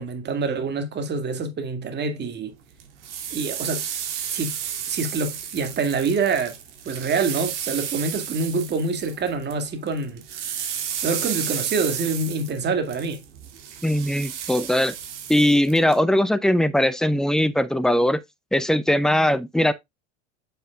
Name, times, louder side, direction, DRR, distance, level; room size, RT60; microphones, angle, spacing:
voice 1, 0.0-2.5 3.3-3.9 4.3-4.6 4.9-6.6 6.8-10.2 11.0-13.2, right 4 dB, 25° right, 2.0 m, -26 dB
sound 1, 2.8-9.6 9.9-16.0, right 8 dB, 65° right, 2.7 m, -32 dB
voice 2, 13.8-14.9 15.3-18.2 18.5-19.7, left 1 dB, ahead, 0.6 m, -20 dB
7.9 x 7.6 x 2.3 m
figure-of-eight pair, 85°, 38 cm